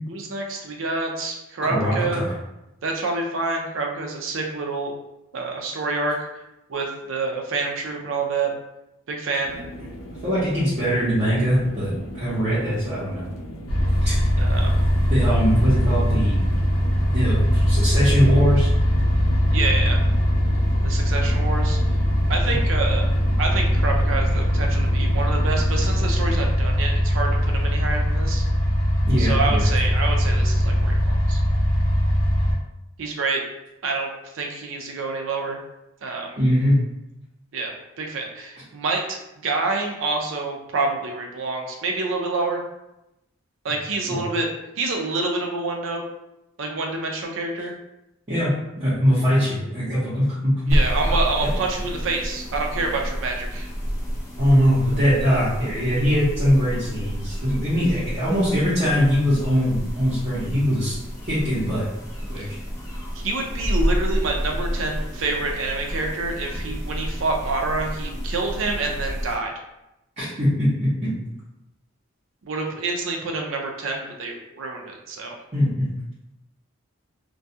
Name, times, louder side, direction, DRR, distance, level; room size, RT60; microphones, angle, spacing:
voice 1, 0.1-2.2 2.8-4.9 5.3-6.2 6.7-8.5 9.1-9.6 14.4-14.7 19.5-20.0 20.8-21.8 22.3-23.1 23.4-28.4 29.2-31.4 33.0-33.4 33.8-34.1 34.3-35.6 36.0-36.4 37.5-42.6 43.6-46.0 46.6-47.7 50.7-53.7 62.4-62.5 63.2-69.5 72.4-75.4, right 3 dB, 65° right, 1 dB, 0.5 m, -27 dB
voice 2, 1.7-2.3 10.2-13.3 14.0-14.2 15.1-16.4 17.1-18.7 29.1-29.7 36.4-36.8 44.1-44.2 48.3-50.7 54.4-61.0 61.3-61.8 62.3-62.5 70.2-70.9 75.5-75.9, equal, 35° right, -12 dB, 0.8 m, -21 dB
sound 1, 9.4-26.5, equal, 65° left, 0.3 m, -38 dB
sound 2, 13.7-32.6, equal, 90° left, 0.8 m, -21 dB
sound 3, 50.7-69.3, equal, 15° left, 0.6 m, -29 dB
2.3 x 2.2 x 2.7 m, 0.89 s
head